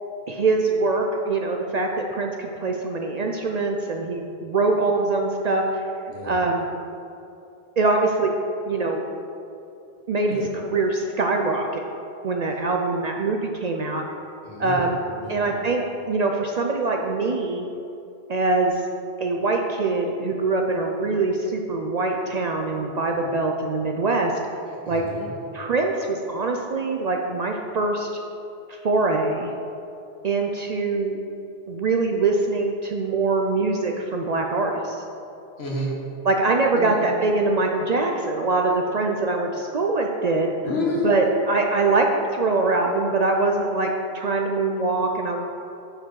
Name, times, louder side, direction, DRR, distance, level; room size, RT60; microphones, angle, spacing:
voice 1, 0.3-5.9 6.2-6.7 7.8-8.3 8.7-9.0 10.1-11.8 12.2-14.0 14.6-15.0 15.3-17.7 18.3-18.8 19.2-24.3 24.9-25.0 25.5-28.1 28.7-29.5 30.2-31.2 31.7-35.0 36.2-40.5 41.0-42.1 42.3-45.4, right 3 dB, 55° right, 2 dB, 0.5 m, -23 dB
voice 2, 14.4-14.8 15.2-15.3 24.9-25.4 35.6-35.9 36.7-37.0 40.6-41.0, left 1 dB, 75° left, -4 dB, 1.7 m, -29 dB
6.1 x 4.8 x 6.2 m, 2.8 s
omnidirectional pair, 1.0 m